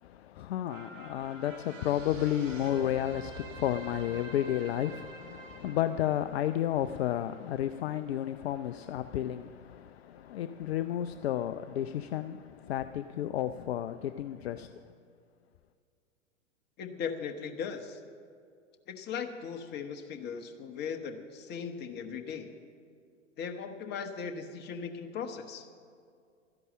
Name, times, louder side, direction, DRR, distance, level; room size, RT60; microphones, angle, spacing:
voice 1, 0.0-14.8, left 11 dB, 55° left, 0.5 m, -32 dB
sound 1, 0.7-7.3 7.7-7.8, right 3 dB, 80° right, 1.9 m, -48 dB
voice 2, 16.8-18.0 18.9-22.5 23.4-25.7, left 6 dB, 25° left, 1.2 m, -38 dB
13.0 x 10.5 x 7.3 m
figure-of-eight pair, 100°, 38 cm